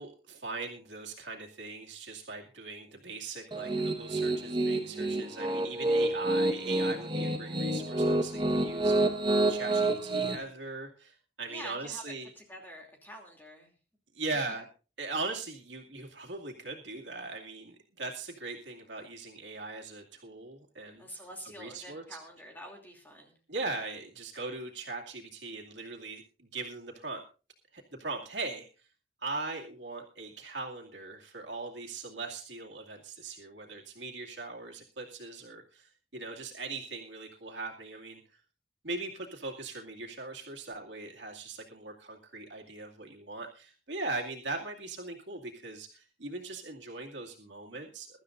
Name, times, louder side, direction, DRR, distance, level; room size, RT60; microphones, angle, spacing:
voice 1, 0.0-9.1 9.5-12.3 14.1-14.7 15.0-21.0 21.6-22.2 23.5-27.2 27.7-28.9 29.2-38.4 38.8-48.2, right 3 dB, 85° right, 0 dB, 2.3 m, -40 dB
Piano, 3.5-10.4, right 2 dB, 25° right, 1.3 m, -28 dB
voice 2, 11.5-13.7 14.3-14.4 21.0-23.4, equal, 10° left, 1 dB, 2.8 m, -47 dB
23.0 x 12.5 x 2.6 m, 0.34 s
head